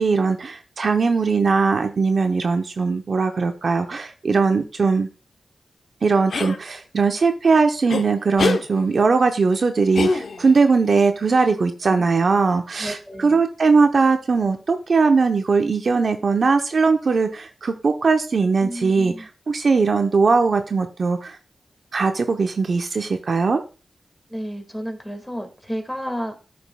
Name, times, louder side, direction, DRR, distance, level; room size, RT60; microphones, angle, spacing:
voice 1, 0.0-5.1 6.0-19.1 19.5-21.4 21.9-23.6, right 4 dB, 60° right, 7 dB, 0.7 m, -20 dB
sound 1, 6.3-6.6 7.9-8.0 8.4-8.6 9.9-10.6, left 4 dB, 75° left, 0.7 m, -23 dB
voice 2, 12.8-13.4 18.6-19.3 24.3-26.5, equal, 10° left, 5 dB, 1.8 m, -32 dB
12.5 x 5.2 x 2.2 m, 0.34 s
cardioid pair, 55°, 0 cm